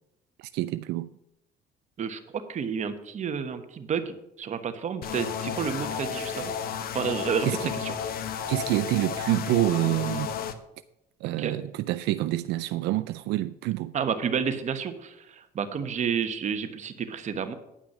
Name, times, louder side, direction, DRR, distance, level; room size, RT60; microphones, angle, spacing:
voice 1, 0.4-1.1 7.4-7.7 8.5-10.3 11.2-13.9, right 16 dB, 85° right, 0.4 m, -27 dB
voice 2, 2.0-6.5 6.9-7.5 7.8-7.9 11.2-11.5 13.9-17.5, right 7 dB, 45° right, 1.3 m, -30 dB
sound 1, 5.0-10.5, left 7 dB, 60° left, 1.0 m, -32 dB
9.9 x 6.0 x 7.4 m
cardioid pair, 110°, 17 cm